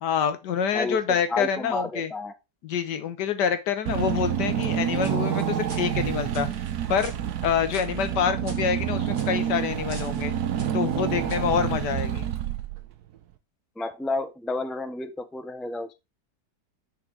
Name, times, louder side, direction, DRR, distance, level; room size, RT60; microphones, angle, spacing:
voice 1, 0.0-2.1 2.6-6.5 6.9-7.1 7.4-10.3 10.7-12.3, left 7 dB, 85° left, 10 dB, 1.6 m, -26 dB
voice 2, 0.7-2.3 13.8-15.9, left 2 dB, ahead, 9 dB, 0.3 m, -31 dB
Car / Engine, 3.9-13.0, right 10 dB, 70° right, 1.3 m, -28 dB
sound 1, 4.8-11.4, right 3 dB, 30° right, 1.5 m, -48 dB
6.3 x 5.2 x 4.6 m, 0.25 s
omnidirectional pair, 1.8 m